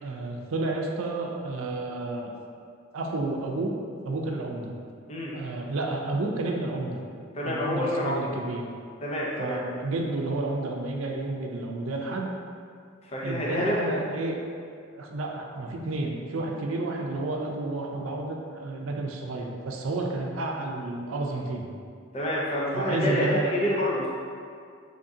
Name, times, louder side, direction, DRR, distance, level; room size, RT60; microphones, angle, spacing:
voice 1, 0.0-2.3 2.9-3.8 4.0-4.7 5.3-6.9 7.4-8.7 9.4-12.3 13.2-14.4 14.9-21.7 22.7-23.5, right 2 dB, 90° right, 1 dB, 0.5 m, -31 dB
voice 2, 7.3-8.2 9.0-9.6 13.1-13.8 22.1-24.1, equal, 30° left, -5 dB, 0.5 m, -27 dB
3.6 x 3.5 x 2.7 m, 2.3 s
head